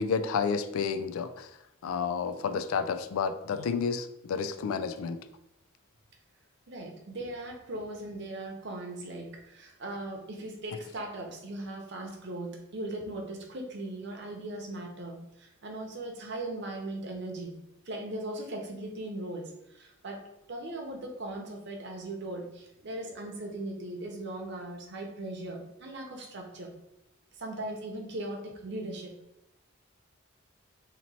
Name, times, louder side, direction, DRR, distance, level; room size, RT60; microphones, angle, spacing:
voice 1, 0.0-1.5 1.8-5.2, left 6 dB, 85° left, 11 dB, 0.3 m, -30 dB
voice 2, 6.7-17.6 17.9-20.2 20.5-26.7 27.4-29.1, right 1 dB, 55° right, 2 dB, 0.7 m, -39 dB
2.9 x 2.8 x 4.1 m, 0.85 s
head